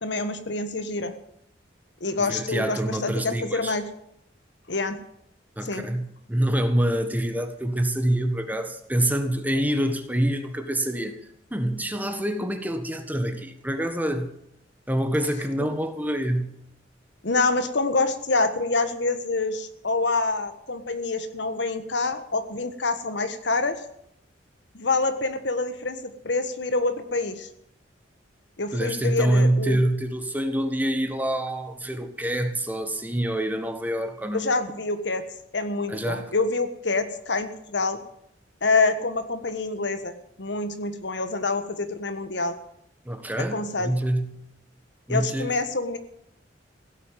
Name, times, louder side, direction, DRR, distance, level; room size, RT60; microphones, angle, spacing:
voice 1, 0.0-1.1 2.0-3.8 4.7-5.0 5.6-5.9 17.2-23.8 24.7-27.5 28.6-29.8 34.3-35.2 35.5-38.0 38.6-40.1 40.4-42.5 43.5-43.9 45.1-46.0, left 3 dB, 65° left, 10 dB, 1.5 m, -26 dB
voice 2, 2.2-3.8 5.6-11.2 11.5-14.4 14.9-16.6 28.7-34.5 35.9-36.3 43.0-44.4 45.1-45.6, right 1 dB, 10° right, 7 dB, 1.5 m, -26 dB
16.5 x 8.3 x 9.2 m, 0.76 s
head